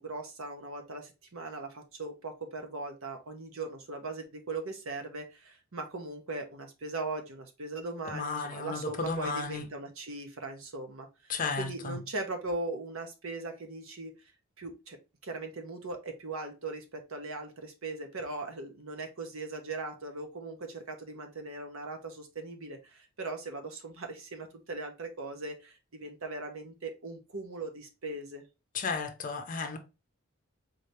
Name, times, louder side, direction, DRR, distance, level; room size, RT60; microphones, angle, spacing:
voice 1, 0.0-14.1 14.6-15.0 15.2-28.5, right 3 dB, 70° right, 0.9 m, -39 dB
voice 2, 8.1-9.7 11.3-12.0 28.7-29.8, left 4 dB, 40° left, 0.6 m, -34 dB
4.0 x 2.8 x 3.2 m
head